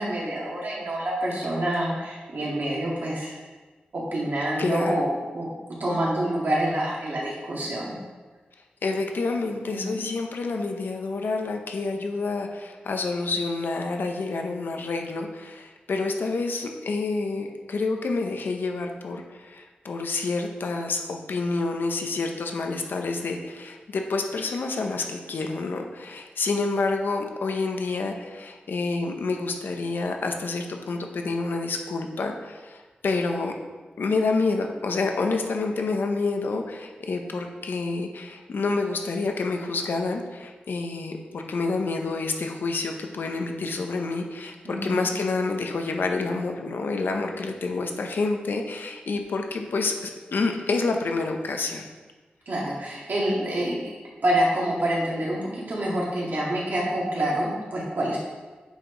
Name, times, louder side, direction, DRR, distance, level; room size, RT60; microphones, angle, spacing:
voice 1, 0.0-3.4 3.9-5.5 5.8-7.9 9.6-10.0 44.6-45.1 52.5-53.8 54.2-58.2, right 1 dB, 65° right, -5 dB, 2.3 m, -27 dB
voice 2, 4.6-5.1 8.8-33.5 34.0-51.9, left 3 dB, 80° left, 3 dB, 0.8 m, -28 dB
8.3 x 5.0 x 3.9 m, 1.3 s
wide cardioid pair, 90°, 3 cm